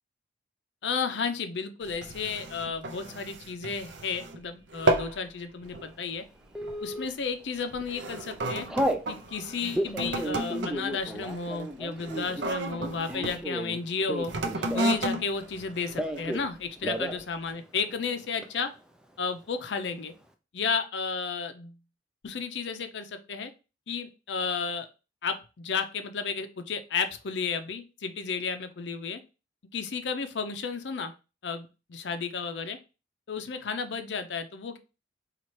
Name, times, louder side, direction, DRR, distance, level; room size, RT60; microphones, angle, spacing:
voice 1, 0.8-6.2 6.8-8.7 9.1-14.3 14.7-18.7 19.2-20.1 20.5-21.8 22.2-23.5 23.9-24.9 25.2-29.2 29.7-31.1 31.4-32.8 33.3-34.8, left 5 dB, 75° left, 8 dB, 0.5 m, -33 dB
sound 1, 1.8-4.4 4.7-5.2 5.6-5.9 6.6-6.9 7.6-13.4 14.2-16.5 17.1-17.2, right 1 dB, 75° right, 0.5 m, -33 dB
Telephone, 6.5-7.1 7.6-7.9 8.2-9.1 9.6-15.1 15.4-16.5 16.8-17.2 17.5-17.6 17.9-18.5, right 1 dB, 5° right, 0.3 m, -33 dB
4.2 x 2.4 x 3.0 m, 0.31 s
head